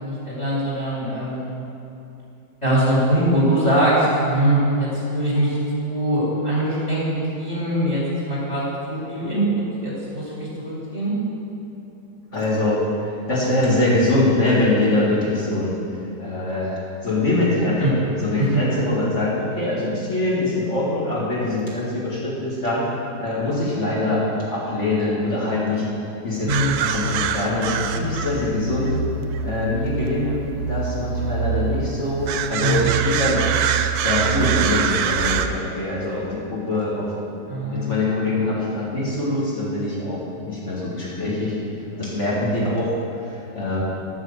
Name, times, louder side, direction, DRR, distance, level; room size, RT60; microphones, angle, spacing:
voice 1, 0.0-1.5 2.6-8.0 8.3-8.6 8.9-9.4 9.8-11.1 17.8-17.9 18.4-18.5 26.4-26.8 32.6-33.0 37.5-38.0, right 1 dB, 25° left, -8 dB, 3.0 m, -22 dB
voice 2, 12.3-15.7 16.2-22.9 23.2-25.9 26.2-29.0 29.4-30.3 30.7-33.5 34.0-37.1 37.6-41.6 41.9-43.8, left 2 dB, 45° left, -7 dB, 2.5 m, -23 dB
sound 1, 26.5-35.5, right 7 dB, 75° right, 1.1 m, -24 dB
9.5 x 7.3 x 6.7 m, 2.8 s
omnidirectional pair, 1.7 m